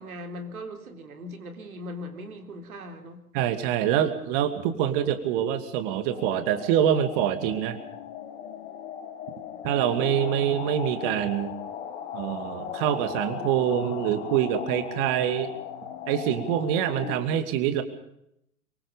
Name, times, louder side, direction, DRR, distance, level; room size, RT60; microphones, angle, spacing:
voice 1, 0.0-3.2, left 1 dB, 65° right, 5 dB, 3.8 m, -39 dB
voice 2, 3.3-7.8 9.6-11.5 12.1-15.5 16.1-17.8, right 10 dB, 35° right, 9 dB, 2.6 m, -25 dB
sound 1, 6.1-17.2, left 8 dB, 45° left, 2.4 m, -37 dB
25.0 x 23.0 x 5.2 m, 0.76 s
figure-of-eight pair, 115°, 46 cm